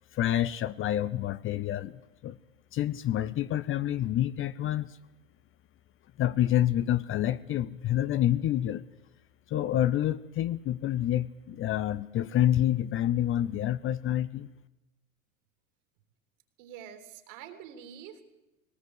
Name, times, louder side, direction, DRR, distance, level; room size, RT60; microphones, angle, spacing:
voice 1, 0.1-2.4 2.7-5.0 6.2-8.9 9.5-14.5, left 12 dB, 30° left, 16 dB, 0.6 m, -28 dB
voice 2, 16.6-18.4, right 9 dB, 60° right, 7 dB, 3.3 m, -46 dB
20.0 x 18.5 x 8.1 m, 1.0 s
hypercardioid pair, 90°, 43 cm